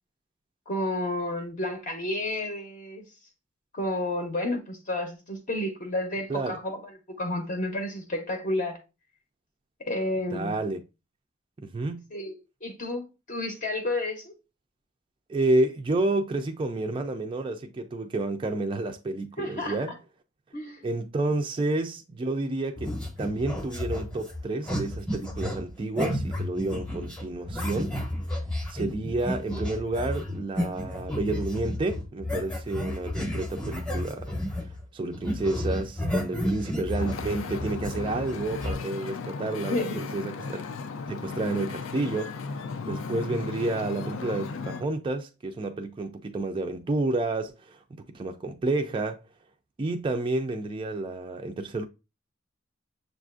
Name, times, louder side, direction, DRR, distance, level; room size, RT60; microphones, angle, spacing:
voice 1, 0.7-3.0 3.7-6.8 7.1-8.8 9.9-10.5 12.1-12.3 12.6-14.3 19.4-19.8 20.5-20.9 39.7-40.0, left 1 dB, 40° left, 0.7 m, -31 dB
voice 2, 10.3-10.8 11.6-12.1 15.3-19.9 20.8-28.0 28.7-34.3 34.9-40.6 41.1-49.2 49.8-51.9, right 2 dB, 25° right, 0.3 m, -30 dB
sound 1, 22.8-34.8 35.1-38.7, left 1 dB, 5° left, 0.8 m, -32 dB
Wind / Ocean, 37.0-44.8, left 4 dB, 80° left, 0.4 m, -36 dB
6.6 x 2.4 x 2.4 m
head